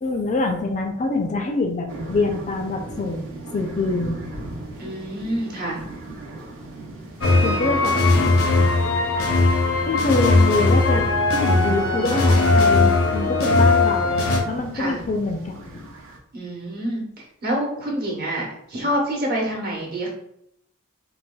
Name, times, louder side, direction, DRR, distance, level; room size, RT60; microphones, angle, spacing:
voice 1, 0.0-3.2 3.5-4.2 7.4-7.9 9.8-11.1 11.3-14.2 14.5-15.9, left 3 dB, 35° left, 3 dB, 0.4 m, -25 dB
sound 1, 1.9-16.2, right 1 dB, 65° right, 0.6 m, -39 dB
voice 2, 4.8-5.8 7.2-7.4 7.9-8.3 14.7-15.0 16.3-20.1, right 1 dB, 50° right, -3 dB, 1.0 m, -27 dB
sound 2, 7.2-14.4, left 3 dB, 75° left, 0.6 m, -18 dB
4.0 x 2.2 x 2.2 m, 0.75 s
head